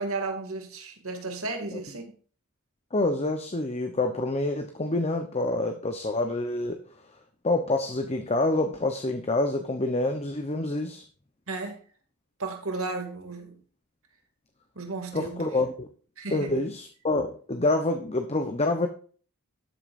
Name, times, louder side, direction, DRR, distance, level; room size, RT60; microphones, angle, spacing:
voice 1, 0.0-2.1 11.5-11.8 12.4-13.6 14.8-15.5 16.2-16.5, right 3 dB, 65° right, 4 dB, 2.5 m, -34 dB
voice 2, 2.9-6.8 7.4-11.0 15.1-15.9 16.3-18.9, left 2 dB, 30° left, 6 dB, 0.9 m, -27 dB
12.5 x 8.1 x 2.6 m, 0.42 s
head